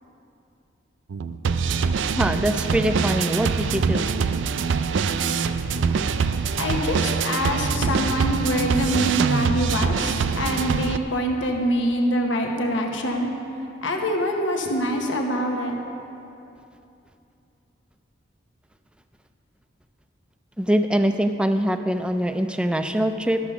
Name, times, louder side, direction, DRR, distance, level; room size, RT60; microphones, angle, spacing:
sound 1, 1.1-11.0, right 5 dB, 75° right, 0.4 m, -24 dB
voice 1, 2.2-4.1 20.6-23.4, equal, 5° right, 8 dB, 0.3 m, -23 dB
voice 2, 6.6-13.3 13.8-15.8, equal, 75° left, 2 dB, 1.0 m, -25 dB
12.5 x 7.0 x 5.8 m, 2.7 s
head